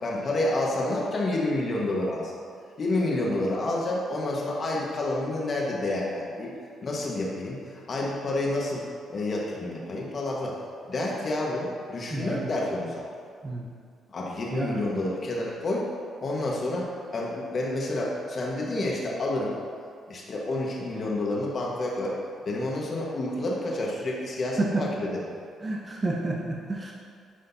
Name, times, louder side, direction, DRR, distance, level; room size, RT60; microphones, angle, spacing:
voice 1, 0.0-2.2 2.8-6.5 6.8-7.6 7.9-8.8 9.1-10.6 10.9-13.0 14.1-15.8 16.2-19.5 20.1-22.1 22.4-25.1, left 2 dB, 45° left, -3 dB, 1.5 m, -29 dB
voice 2, 12.1-12.5 13.4-13.7 14.5-14.8 24.6-24.9 25.6-26.9, right 2 dB, 25° right, -2 dB, 0.8 m, -29 dB
9.9 x 5.1 x 2.8 m, 2.2 s
cardioid pair, 90°, 0 cm